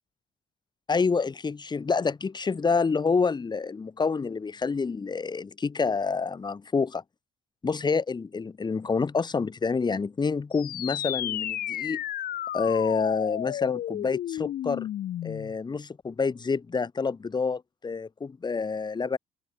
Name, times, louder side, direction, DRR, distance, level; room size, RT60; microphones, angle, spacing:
voice 1, 0.9-7.0 7.6-12.0 12.5-14.9 15.2-19.2, left 4 dB, 25° left, 2.9 m, -28 dB
sound 1, 10.5-15.6, left 12 dB, 60° left, 3.4 m, -32 dB
cardioid pair, 110°, 17 cm